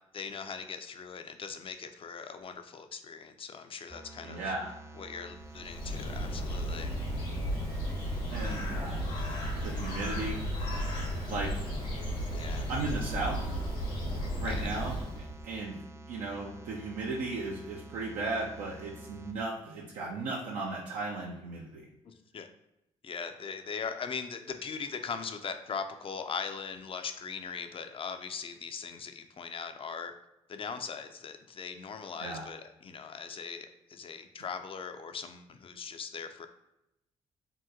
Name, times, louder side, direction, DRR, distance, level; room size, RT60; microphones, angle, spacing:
voice 1, 0.1-4.5 5.0-7.0 12.3-12.7 14.4-14.7 22.0-22.5 23.0-30.1 30.5-36.5, left 5 dB, 40° left, 8 dB, 0.4 m, -40 dB
sound 1, 3.9-19.3, right 2 dB, 20° right, 0.4 m, -49 dB
voice 2, 4.2-4.7 8.3-9.0 9.6-10.4 11.3-11.6 12.7-13.4 14.4-15.8 16.1-21.8 32.2-32.5, right 3 dB, 80° right, -3 dB, 0.5 m, -36 dB
Bird, 5.4-15.4, equal, 90° left, 1.0 m, -34 dB
2.9 x 2.2 x 3.6 m, 0.87 s
supercardioid pair, 50°, 14 cm